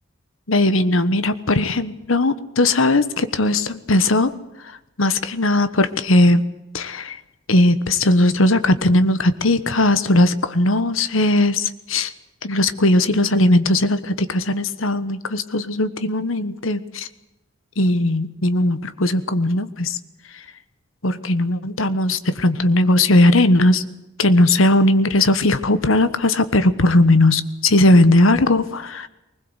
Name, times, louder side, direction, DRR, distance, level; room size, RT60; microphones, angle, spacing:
voice 1, 0.5-4.3 5.0-6.4 6.7-7.2 7.5-12.1 12.4-17.1 17.8-20.0 20.3-20.4 21.0-23.8 24.2-29.1, left 1 dB, 75° left, 13 dB, 1.3 m, -18 dB
20.5 x 20.0 x 8.2 m, 0.94 s
head